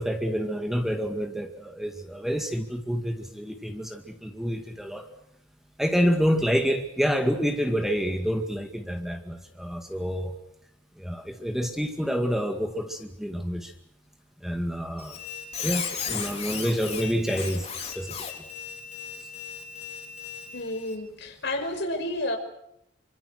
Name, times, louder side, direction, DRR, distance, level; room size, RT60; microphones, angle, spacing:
voice 1, 0.0-5.0 5.8-10.3 11.0-13.7 14.4-15.2 15.6-17.7 18.0-18.2, equal, ahead, 5 dB, 2.0 m, -28 dB
Squeak, 15.0-21.0, left 7 dB, 35° left, 4.3 m, -36 dB
voice 2, 20.5-22.4, left 1 dB, 60° left, 5 dB, 5.3 m, -30 dB
27.5 x 25.5 x 6.5 m, 0.78 s
head